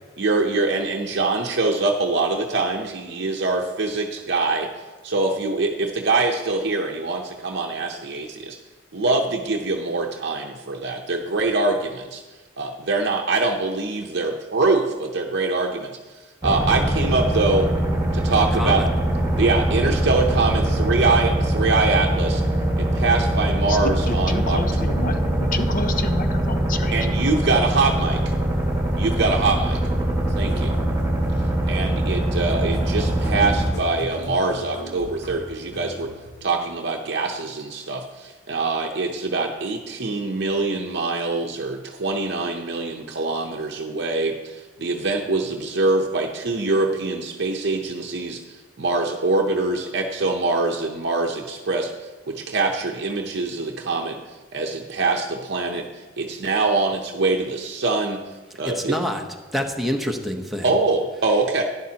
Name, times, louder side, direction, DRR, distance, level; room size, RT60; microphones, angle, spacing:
voice 1, 0.2-4.7 5.0-8.6 8.9-12.2 12.6-16.0 16.4-17.7 18.1-18.8 19.4-22.4 22.8-24.6 25.1-25.2 26.9-28.2 29.0-29.8 30.4-30.7 31.6-36.1 36.4-58.2 58.6-58.9 60.6-61.6, right 3 dB, 60° right, 1 dB, 0.7 m, -24 dB
sound 1, 16.4-33.7, right 1 dB, 15° right, 1.9 m, -22 dB
voice 2, 18.5-18.8 58.7-59.2 59.5-60.8, equal, ahead, 1 dB, 0.9 m, -26 dB
voice 3, 24.1-27.0, left 2 dB, 45° left, 8 dB, 0.8 m, -29 dB
sound 2, 30.3-36.6, equal, 60° left, 1.5 m, -38 dB
11.5 x 10.5 x 2.9 m, 1.3 s
head